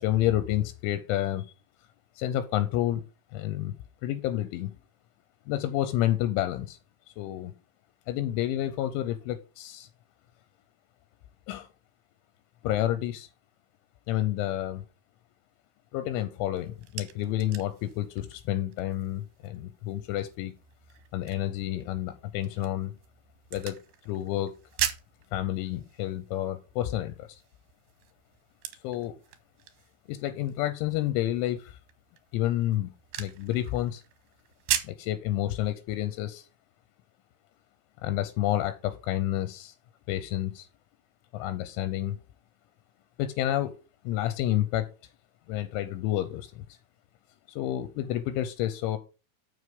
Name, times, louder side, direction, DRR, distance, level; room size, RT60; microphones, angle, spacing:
voice 1, 0.0-1.5 2.2-3.0 3.3-3.7 4.0-4.7 5.5-6.8 7.2-7.5 8.1-9.9 11.5-11.7 12.6-13.3 14.1-14.8 15.9-20.5 21.1-22.9 23.5-23.8 24.1-24.5 25.3-27.4 28.8-29.1 30.1-31.8 32.3-32.9 33.2-34.0 34.8-36.5 38.0-39.7 40.1-40.7 41.3-42.2 43.2-43.7 44.0-44.9 45.5-46.8 47.5-49.0, left 13 dB, 85° left, 11 dB, 3.0 m, -29 dB
sound 1, 16.5-35.1, right 12 dB, 75° right, 2.3 m, -40 dB
7.1 x 6.5 x 5.2 m, 0.31 s
omnidirectional pair, 5.7 m